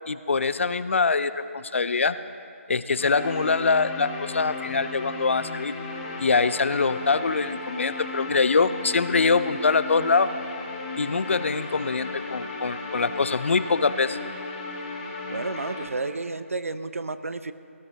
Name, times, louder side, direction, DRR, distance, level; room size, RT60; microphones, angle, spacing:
voice 1, 0.1-2.2 2.7-5.7 6.2-10.3 11.0-14.2, left 4 dB, 60° left, 14 dB, 0.5 m, -24 dB
sound 1, 3.0-15.9, left 2 dB, 30° left, 1.6 m, -35 dB
voice 2, 15.3-17.5, right 3 dB, 70° right, 12 dB, 0.7 m, -31 dB
18.0 x 13.0 x 3.4 m, 2.4 s
figure-of-eight pair, 155°, 8 cm